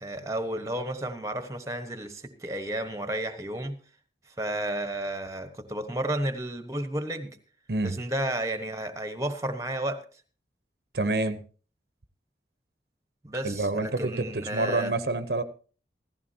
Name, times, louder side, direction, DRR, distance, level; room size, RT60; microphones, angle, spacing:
voice 1, 0.0-3.8 4.4-7.4 7.8-10.0 13.2-14.9, right 1 dB, 15° right, 9 dB, 1.2 m, -32 dB
voice 2, 10.9-11.4 13.4-15.4, right 2 dB, 65° right, 11 dB, 0.9 m, -27 dB
16.0 x 14.5 x 2.8 m, 0.38 s
head